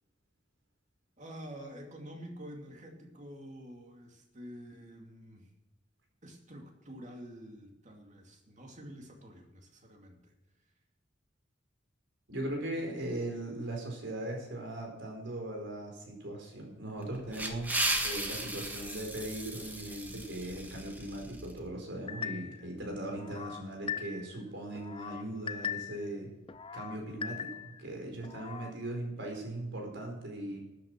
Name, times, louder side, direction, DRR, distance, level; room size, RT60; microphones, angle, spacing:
voice 1, 1.2-5.5 6.2-10.3, equal, 40° right, 2 dB, 2.4 m, -48 dB
voice 2, 12.3-17.7 18.0-26.3 26.7-30.6, right 1 dB, 65° right, 1 dB, 4.6 m, -39 dB
sound 1, 17.0-21.5, right 1 dB, 10° right, 1.6 m, -36 dB
sound 2, 22.1-22.7 23.1-24.4 24.7-26.1 26.5-27.8 28.2-28.7, left 7 dB, 30° left, 0.5 m, -40 dB
13.0 x 8.8 x 6.1 m, 1.0 s
head